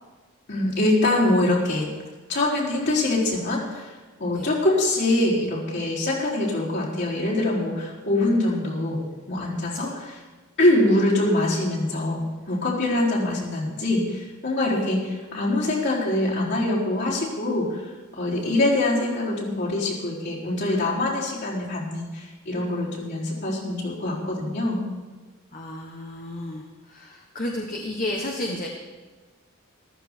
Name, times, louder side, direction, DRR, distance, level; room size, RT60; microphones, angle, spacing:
voice 1, 0.5-1.9 2.3-3.9 4.2-9.0 9.3-10.2 10.6-17.8 18.1-24.8, left 1 dB, 55° left, -6 dB, 4.3 m, -24 dB
voice 2, 25.5-28.7, left 1 dB, 40° left, 0 dB, 1.3 m, -32 dB
14.5 x 13.5 x 4.6 m, 1.3 s
head